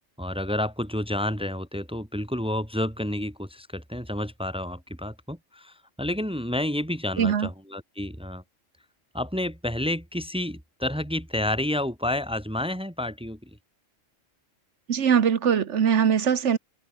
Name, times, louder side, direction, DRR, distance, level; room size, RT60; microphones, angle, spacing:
voice 1, 0.2-8.4 9.1-13.5, left 1 dB, 5° right, 1.8 m, -30 dB
voice 2, 7.2-7.5 14.9-16.6, right 7 dB, 65° right, 1.4 m, -21 dB
omnidirectional pair, 1.3 m